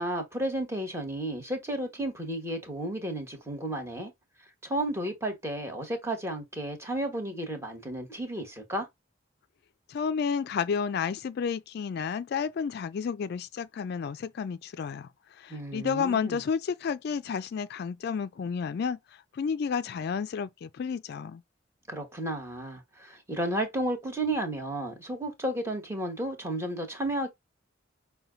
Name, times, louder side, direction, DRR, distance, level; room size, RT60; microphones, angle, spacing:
voice 1, 0.0-4.1 4.6-8.9 15.5-16.4 21.9-27.3, right 1 dB, 15° right, 1.2 m, -32 dB
voice 2, 9.9-21.4, left 6 dB, 55° left, 0.3 m, -31 dB
5.6 x 2.2 x 3.8 m
head